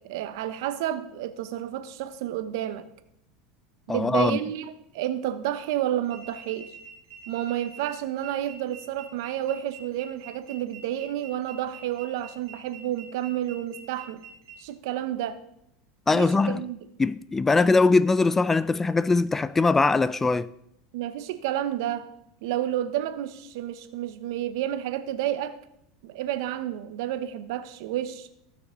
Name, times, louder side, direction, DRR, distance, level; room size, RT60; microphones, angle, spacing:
voice 1, 0.0-2.9 3.9-6.7 7.3-14.2 14.6-15.4 16.1-16.8 20.9-22.1 22.4-25.6 26.0-28.3, right 12 dB, 70° right, 0.9 m, -30 dB
voice 2, 3.9-4.4 16.1-16.6 17.0-20.5, left 3 dB, 15° left, 0.3 m, -21 dB
sound 1, 6.0-14.6, right 7 dB, 85° right, 1.8 m, -47 dB
15.5 x 6.0 x 3.8 m
supercardioid pair, 115°, 2 cm